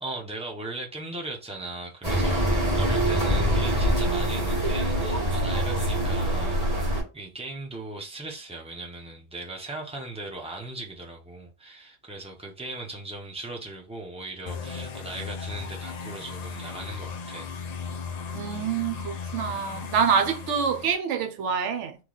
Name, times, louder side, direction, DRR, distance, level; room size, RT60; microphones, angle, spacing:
voice 1, 0.0-6.6 7.1-17.5, right 2 dB, 5° right, 0.5 m, -38 dB
sound 1, 2.0-7.0, equal, 30° right, 1.4 m, -24 dB
sound 2, 14.5-20.9, left 5 dB, 85° left, 0.3 m, -36 dB
voice 2, 18.3-22.0, right 6 dB, 70° right, 0.9 m, -26 dB
3.1 x 2.2 x 3.8 m
omnidirectional pair, 1.3 m